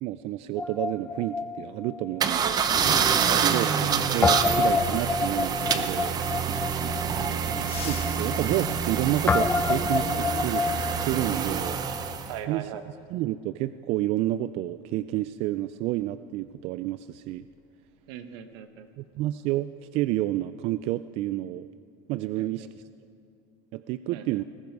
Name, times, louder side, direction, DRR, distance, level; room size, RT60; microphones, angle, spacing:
voice 1, 0.0-2.6 3.4-6.1 7.8-11.8 12.5-12.7 13.1-17.5 19.0-21.7 22.1-22.7 23.7-24.4, right 15 dB, 50° right, 13 dB, 0.4 m, -30 dB
Guitar, 0.6-3.0 3.2-3.4 4.2-12.1, left 4 dB, 15° left, 0.6 m, -29 dB
sound 1, 2.2-12.3, right 7 dB, 30° right, 0.8 m, -27 dB
voice 2, 6.8-7.6 12.3-12.8 18.1-18.9 22.4-22.7 24.1-24.4, right 10 dB, 75° right, 9 dB, 1.3 m, -40 dB
sound 2, 7.6-10.0 11.6-11.7 12.9-13.0 14.7-14.8 15.2-15.4 15.9-18.1 18.3-18.6 19.0-19.4, left 9 dB, 40° left, 1.5 m, -46 dB
20.0 x 15.5 x 4.7 m, 2.5 s
supercardioid pair, 145°, 14 cm